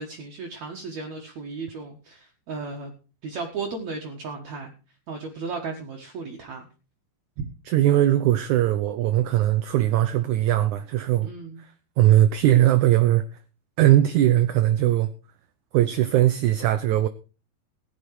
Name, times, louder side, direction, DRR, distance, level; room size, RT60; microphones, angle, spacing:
voice 1, 0.0-2.9 3.2-4.7 5.1-6.7 7.4-7.5 11.2-11.6, right 4 dB, 55° right, 2.5 m, -35 dB
voice 2, 7.7-11.3 12.0-13.2 13.8-15.1 15.7-17.1, right 13 dB, 75° right, 1.8 m, -20 dB
16.0 x 10.0 x 4.7 m
omnidirectional pair, 4.3 m